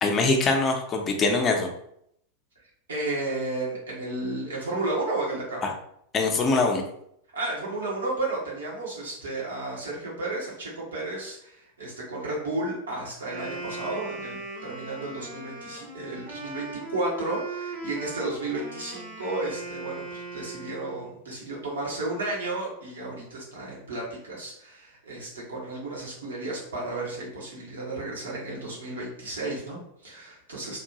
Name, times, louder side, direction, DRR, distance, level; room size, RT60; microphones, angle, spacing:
voice 1, 0.0-1.7 5.6-5.7 6.1-6.8, left 3 dB, 25° left, 2 dB, 0.6 m, -23 dB
voice 2, 2.9-5.6 7.3-30.8, right 2 dB, 70° right, -5 dB, 1.3 m, -33 dB
Wind instrument woodwind instrument, 13.2-21.2, right 3 dB, 35° right, 0.9 m, -39 dB
3.0 x 2.6 x 2.8 m, 0.72 s
figure-of-eight pair, 90°, 0 cm